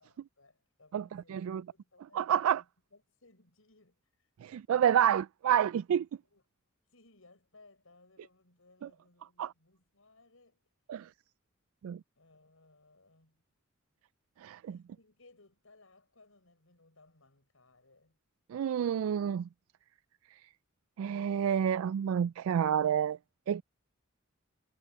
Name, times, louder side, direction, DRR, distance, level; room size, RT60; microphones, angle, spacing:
voice 1, 0.0-4.3 4.7-5.2 6.3-6.4 6.9-10.6 10.9-11.0 12.2-13.4 14.6-18.2, left 2 dB, 85° left, 6.0 m, -63 dB
voice 2, 0.9-1.6 2.1-2.6 4.4-6.1 9.4-9.5 10.9-11.1 11.8-12.0 14.4-14.8 18.5-19.5 21.0-23.2 23.5-23.6, right 9 dB, 90° right, 0.3 m, -29 dB
head